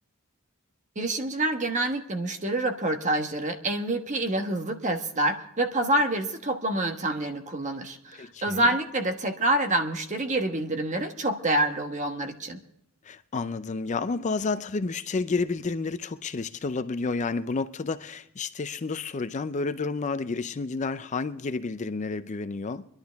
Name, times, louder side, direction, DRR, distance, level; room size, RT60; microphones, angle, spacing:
voice 1, 0.9-12.6, right 1 dB, 35° right, 1.2 m, -27 dB
voice 2, 8.1-8.7 13.0-22.9, left 4 dB, 35° left, 0.4 m, -30 dB
24.0 x 11.5 x 3.5 m
head